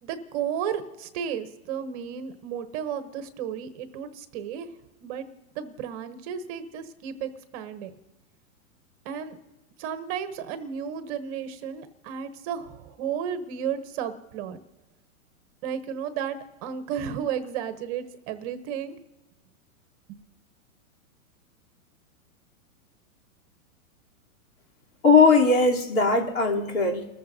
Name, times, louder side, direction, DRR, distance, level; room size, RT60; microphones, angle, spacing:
voice 1, 0.0-4.7 5.0-5.2 5.5-7.9 9.0-9.4 9.8-14.6 15.6-16.4 16.6-19.0 20.1-20.2, right 8 dB, 25° right, 10 dB, 0.7 m, -33 dB
voice 2, 25.0-27.1, left 4 dB, 75° left, -1 dB, 3.2 m, -19 dB
30.0 x 14.0 x 2.6 m, 1.1 s
hypercardioid pair, 155°, 43 cm